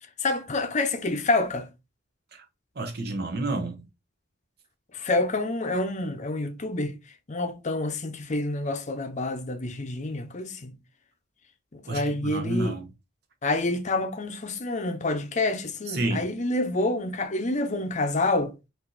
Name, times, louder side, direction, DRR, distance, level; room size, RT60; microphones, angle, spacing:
voice 1, 0.2-1.7 4.9-6.9 7.3-10.7 11.7-12.8 13.4-18.5, left 2 dB, 40° left, 0.7 m, -28 dB
voice 2, 2.7-3.9 11.9-12.9 15.9-16.3, right 2 dB, 55° right, 1.0 m, -30 dB
4.7 x 2.7 x 4.0 m
head